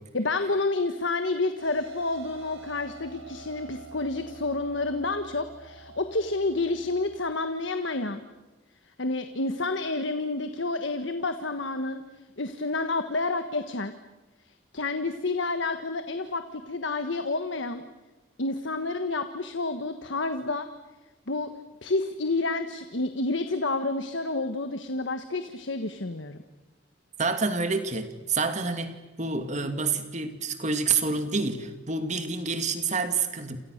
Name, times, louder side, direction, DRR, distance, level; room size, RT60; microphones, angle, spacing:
voice 1, 0.1-8.2 9.0-12.0 12.4-13.9 14.4-17.8 18.4-20.7 21.3-21.5 21.8-26.4, left 3 dB, 70° left, 8 dB, 1.4 m, -29 dB
sound 1, 1.6-7.2, right 4 dB, 85° right, 5.1 m, -47 dB
voice 2, 27.2-33.6, right 4 dB, 35° right, 8 dB, 2.5 m, -28 dB
29.5 x 28.0 x 6.6 m, 1.1 s
head